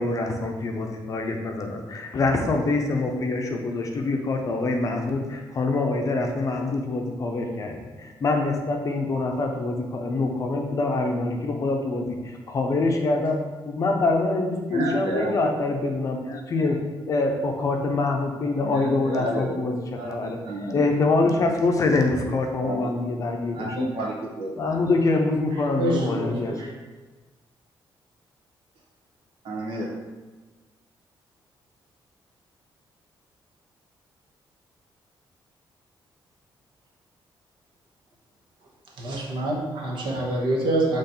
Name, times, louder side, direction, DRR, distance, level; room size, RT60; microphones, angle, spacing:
voice 1, 0.0-13.4 13.7-23.9 24.6-26.5, left 3 dB, 40° left, 3 dB, 0.6 m, -25 dB
voice 2, 14.7-15.4 18.6-19.6 20.0-20.8 21.3-21.4 22.6-22.9 23.5-24.5 29.4-29.9, right 1 dB, 90° right, -3 dB, 1.1 m, -30 dB
voice 3, 25.8-26.7 39.0-41.0, right 1 dB, 65° right, -1 dB, 1.0 m, -26 dB
4.2 x 3.1 x 4.0 m, 1.2 s
cardioid pair, 150°, 9 cm